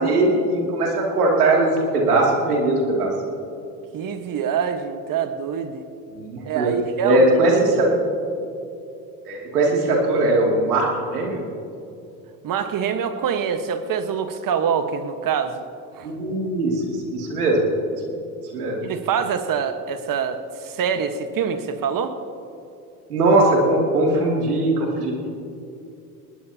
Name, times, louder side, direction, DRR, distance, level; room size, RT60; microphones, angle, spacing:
voice 1, 0.0-3.1 6.2-6.7 7.0-7.9 9.3-10.9 11.1-11.5 16.0-17.6 18.5-18.8 23.1-25.1, right 2 dB, 90° right, -1 dB, 2.7 m, -20 dB
voice 2, 3.9-5.9 6.4-7.3 12.4-15.6 16.0-16.1 18.8-22.1, right 7 dB, 45° right, 8 dB, 1.4 m, -25 dB
21.0 x 19.5 x 2.9 m, 2.6 s
hypercardioid pair, 65°, 44 cm